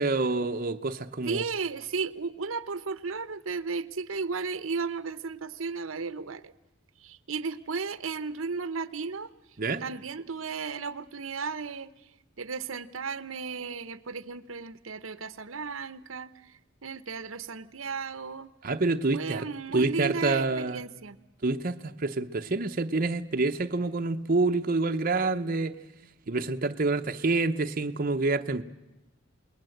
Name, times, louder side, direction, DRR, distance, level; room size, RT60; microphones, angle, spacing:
voice 1, 0.0-1.4 9.6-9.8 18.6-19.5 19.7-20.8 21.4-25.7 26.3-28.6, right 3 dB, 45° right, 0.8 m, -27 dB
voice 2, 1.3-6.5 7.0-9.3 9.8-11.9 12.4-18.5 19.1-21.2, right 5 dB, 85° right, 1.0 m, -34 dB
28.5 x 20.5 x 7.9 m
head